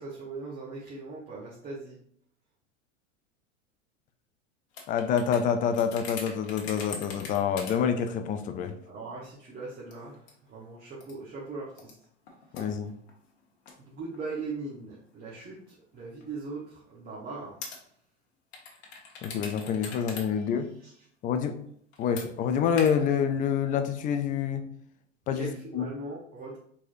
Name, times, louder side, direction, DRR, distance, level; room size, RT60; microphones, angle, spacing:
voice 1, 0.0-2.0 8.8-11.9 13.8-17.6 20.0-20.1 20.3-21.0 25.3-26.6, right 3 dB, 25° right, -5 dB, 1.1 m, -40 dB
sound 1, 4.7-7.7 8.1-8.2 8.8-8.9 9.9-10.5 11.0-11.1 11.8-13.8 14.1-14.2 15.0-15.3 16.2-16.3 17.6-17.8 18.5-20.2 20.5-20.6 21.9-22.3 22.8-22.9, left 4 dB, 55° left, 1.3 m, -42 dB
voice 2, 4.9-8.8 12.5-12.9 19.2-20.7 21.2-21.6 22.0-24.6 25.3-25.8, left 7 dB, 20° left, 7 dB, 0.4 m, -27 dB
4.7 x 4.1 x 2.6 m, 0.65 s
figure-of-eight pair, 85°, 37 cm